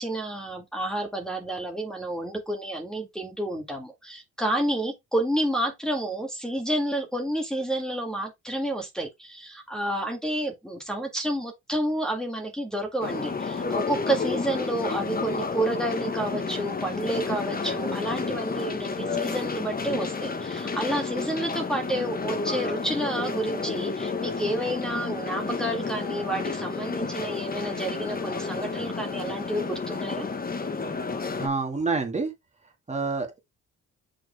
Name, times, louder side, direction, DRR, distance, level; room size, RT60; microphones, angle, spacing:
voice 1, 0.0-30.3, right 1 dB, ahead, 1.8 m, -30 dB
sound 1, 13.0-31.5, left 4 dB, 30° left, 1.3 m, -31 dB
voice 2, 31.4-32.3 32.9-33.4, right 4 dB, 25° right, 2.0 m, -27 dB
6.3 x 4.6 x 3.4 m
cardioid pair, 90°, 30 cm